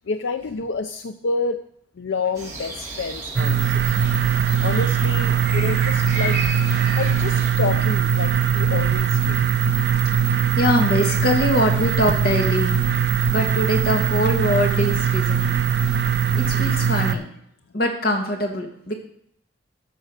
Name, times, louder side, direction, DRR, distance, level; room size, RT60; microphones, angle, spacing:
voice 1, 0.1-1.7 2.0-4.1 4.6-6.4 7.0-9.4 16.5-16.8, left 4 dB, 85° left, 9 dB, 0.5 m, -28 dB
sound 1, 2.3-7.5, right 2 dB, 15° right, 2.6 m, -33 dB
sound 2, 3.4-17.2, right 7 dB, 60° right, 0.6 m, -21 dB
voice 2, 10.6-12.8 13.3-15.6 16.3-17.3 17.7-18.9, equal, 55° left, 2 dB, 2.1 m, -23 dB
13.0 x 5.4 x 6.6 m, 0.68 s
head